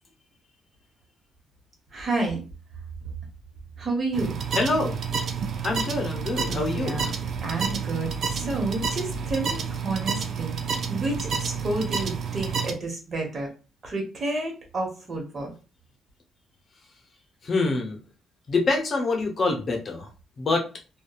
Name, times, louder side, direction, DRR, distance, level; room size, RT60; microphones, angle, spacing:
voice 1, 1.9-2.4 3.8-4.4 6.5-7.1 7.4-13.5 13.8-15.5, right 2 dB, 40° right, 1 dB, 1.1 m, -30 dB
sound 1, 4.1-12.7, right 6 dB, 60° right, 0.4 m, -29 dB
voice 2, 4.5-5.0 5.6-7.0 17.4-18.0 18.5-20.1 20.4-20.7, left 3 dB, 45° left, 2 dB, 0.7 m, -25 dB
2.7 x 2.2 x 2.3 m, 0.33 s
cardioid pair, 90°, 0 cm